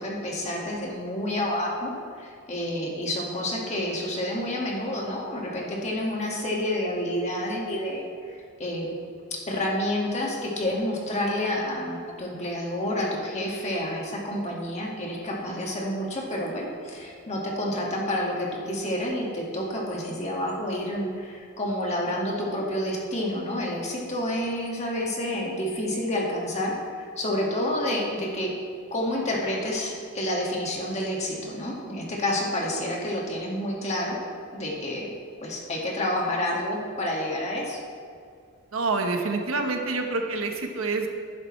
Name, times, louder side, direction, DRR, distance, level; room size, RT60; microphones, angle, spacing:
voice 1, 0.0-8.9 9.5-28.5 28.9-34.2 34.5-35.1 35.4-37.8, left 1 dB, 35° left, -3 dB, 1.9 m, -29 dB
voice 2, 38.7-41.1, right 3 dB, 80° right, 3 dB, 1.1 m, -27 dB
11.5 x 10.5 x 3.2 m, 2.3 s
head